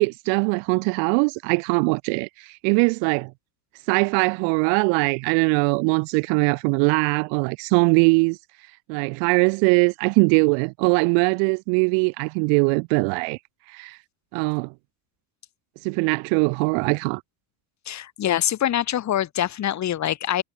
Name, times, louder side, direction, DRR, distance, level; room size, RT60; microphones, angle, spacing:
voice 1, 0.0-3.3 3.9-8.4 8.9-13.4 13.7-14.0 14.3-14.7 15.8-17.2, right 40 dB or more, 85° right, 0.7 m, -21 dB
voice 2, 17.9-20.4, left 11 dB, 40° left, 4.5 m, -24 dB
cardioid pair, 145°, 43 cm